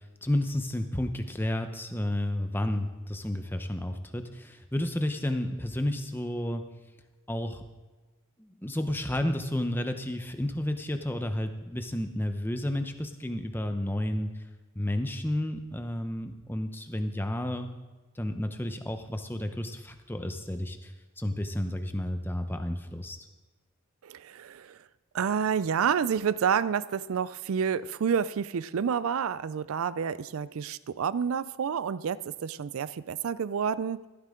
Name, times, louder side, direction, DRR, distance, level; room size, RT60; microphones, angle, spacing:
voice 1, 0.0-6.6 7.3-7.6 8.4-14.3 14.8-17.7 18.2-23.2, left 1 dB, 10° left, 7 dB, 0.8 m, -31 dB
voice 2, 24.0-24.8 25.1-34.0, right 7 dB, 80° right, 17 dB, 0.4 m, -29 dB
15.0 x 13.5 x 3.8 m, 1.2 s
head